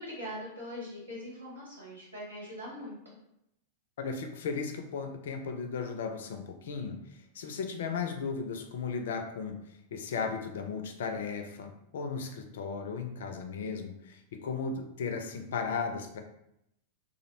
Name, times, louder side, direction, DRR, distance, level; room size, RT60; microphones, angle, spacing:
voice 1, 0.0-3.0, left 1 dB, 85° right, -6 dB, 1.2 m, -41 dB
voice 2, 4.0-7.0 7.4-9.6 9.9-16.2, left 5 dB, 65° left, 6 dB, 0.3 m, -35 dB
2.4 x 2.0 x 2.8 m, 0.80 s
figure-of-eight pair, 90°, 0 cm